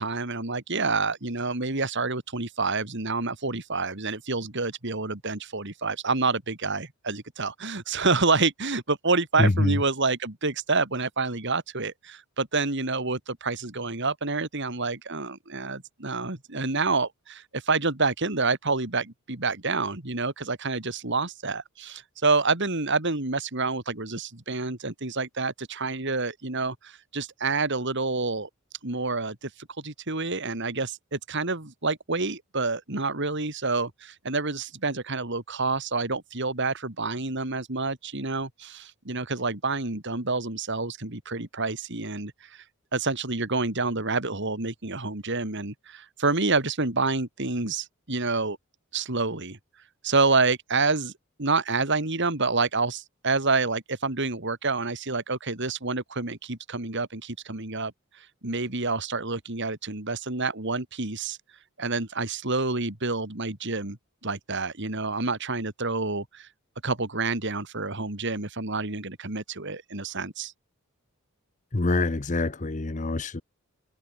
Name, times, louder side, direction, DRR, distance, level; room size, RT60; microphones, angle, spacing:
voice 1, 0.0-28.5 28.8-42.6 42.9-48.6 48.9-49.6 50.0-51.1 51.4-61.4 61.8-64.0 64.2-66.5 66.8-70.5, right 3 dB, 55° right, 2.9 m, -28 dB
voice 2, 9.4-9.8 71.7-73.4, left 2 dB, 35° left, 0.8 m, -25 dB
head